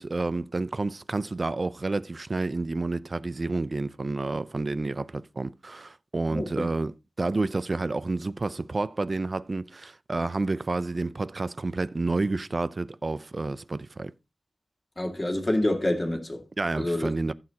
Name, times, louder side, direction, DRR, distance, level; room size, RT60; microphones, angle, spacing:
voice 1, 0.0-14.1 16.6-17.3, right 3 dB, 45° right, 0.4 m, -30 dB
voice 2, 6.3-6.7 15.0-16.4 16.8-17.1, left 1 dB, 25° left, 2.0 m, -27 dB
15.0 x 6.4 x 2.8 m
wide cardioid pair, 85°, 0 cm